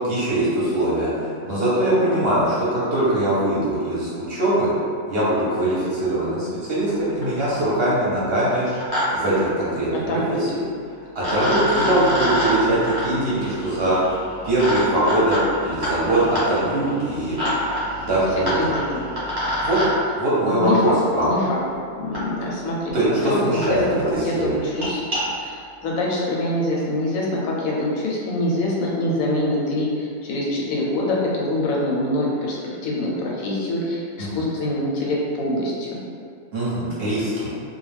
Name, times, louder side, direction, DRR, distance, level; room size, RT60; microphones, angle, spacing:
voice 1, 0.0-4.7 5.1-8.7 9.1-10.6 10.9-14.1 14.4-17.4 18.0-18.8 19.6-19.8 20.1-21.3 22.9-24.6 34.2-34.4 36.5-37.5, right 1 dB, 55° right, -8 dB, 0.7 m, -22 dB
sound 1, 6.9-7.0 7.2-7.7 8.5-9.0 9.3-9.4 10.7-10.8 11.2-19.9 21.2-21.3 22.1-22.2 22.9-23.0 23.2-23.3 23.6-23.7 24.0-24.2 24.6-25.2, equal, 25° right, 0.5 m, -26 dB
voice 2, 10.1-10.4 18.6-19.0 20.5-21.6 21.9-23.8 24.2-25.0 25.4-36.0, left 1 dB, 85° left, -3 dB, 1.0 m, -25 dB
2.4 x 2.2 x 3.2 m, 2.2 s
omnidirectional pair, 1.4 m